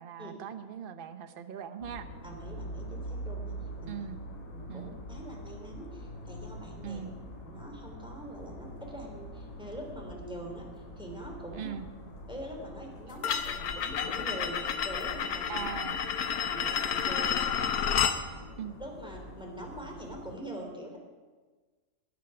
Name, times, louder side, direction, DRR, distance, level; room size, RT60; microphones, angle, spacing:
voice 1, 0.0-2.1 3.9-4.2 4.7-4.9 6.8-7.1 11.6-11.9 15.5-16.0 18.6-18.8, right 9 dB, 45° right, 9 dB, 0.9 m, -40 dB
sound 1, 1.8-20.4, equal, 60° left, 3.8 m, -45 dB
voice 2, 2.2-3.5 3.8-4.0 4.5-7.0 7.4-10.7 11.0-11.7 12.3-15.7 16.5-18.1 18.8-21.0, right 1 dB, 5° right, 0 dB, 3.1 m, -44 dB
sound 2, 13.2-18.2, left 7 dB, 85° left, 1.4 m, -30 dB
20.0 x 8.6 x 5.9 m, 1.4 s
omnidirectional pair, 1.5 m